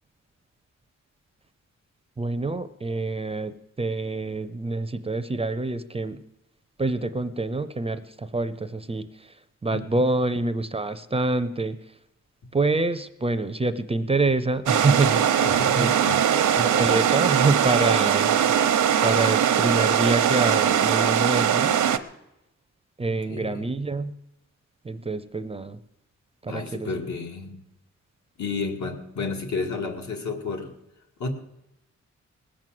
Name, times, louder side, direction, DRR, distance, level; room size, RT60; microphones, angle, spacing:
voice 1, 2.2-6.2 6.8-9.3 9.6-11.8 12.5-15.4 15.8-15.9 16.6-18.7 19.0-21.8 23.0-24.1 24.8-25.8 26.4-26.9, right 3 dB, 20° right, 12 dB, 0.5 m, -26 dB
voice 2, 9.7-10.1 15.4-16.2 23.1-23.7 26.5-27.6 28.4-30.7 31.2-31.3, left 3 dB, 70° left, 2 dB, 2.2 m, -31 dB
sound 1, 14.7-22.0, right 9 dB, 90° right, 0.9 m, -21 dB
19.5 x 7.6 x 7.6 m, 0.88 s
wide cardioid pair, 150°, 30 cm